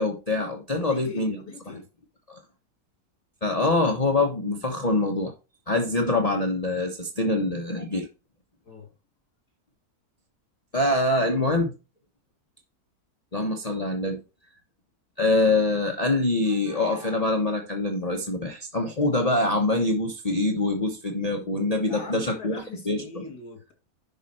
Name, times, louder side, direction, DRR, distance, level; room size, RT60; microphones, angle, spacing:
voice 1, 0.0-1.4 2.3-2.4 3.4-5.3 5.7-8.1 10.7-11.7 13.3-14.2 15.2-22.6 22.9-23.2, left 2 dB, 25° left, 1.1 m, -24 dB
voice 2, 0.8-1.9 8.6-8.9 21.8-23.7, left 3 dB, 80° left, 3.0 m, -42 dB
11.0 x 4.7 x 4.3 m
omnidirectional pair, 1.7 m